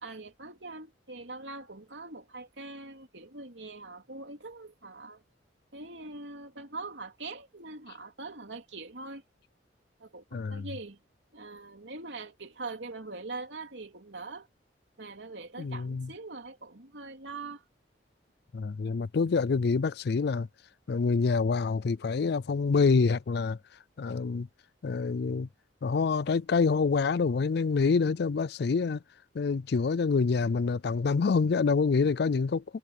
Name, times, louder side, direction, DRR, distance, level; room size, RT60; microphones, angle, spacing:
voice 1, 0.0-5.2 5.7-9.2 10.0-11.0 11.3-14.5 15.0-17.6, right 3 dB, 75° right, 3.3 m, -42 dB
voice 2, 10.3-10.8 15.6-16.1 18.5-20.5 20.9-23.6 24.0-24.5 24.8-25.5 25.8-29.0 29.3-32.6, left 4 dB, 60° left, 0.4 m, -26 dB
head